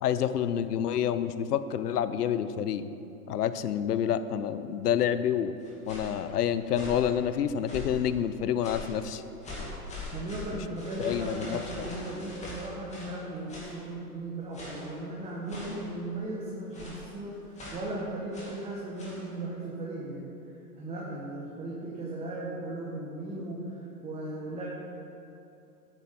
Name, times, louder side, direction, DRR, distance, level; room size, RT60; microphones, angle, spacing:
voice 1, 0.0-2.9 3.3-5.5 5.9-9.2 11.0-11.8 12.1-12.3, left 9 dB, 80° left, 13 dB, 0.7 m, -28 dB
sound 1, 5.6-6.2 6.7-7.1 7.6-8.1 8.6-9.0 9.4-13.2 13.5-13.8 14.5-14.9 15.5-15.9 16.7-17.1 17.5-17.9 18.3-18.6 19.0-19.2, left 1 dB, 15° left, 2.7 m, -42 dB
voice 2, 10.1-20.3 20.8-24.7, right 2 dB, 15° right, -4 dB, 1.2 m, -37 dB
11.0 x 9.0 x 4.2 m, 2.8 s
hypercardioid pair, 125°, 46 cm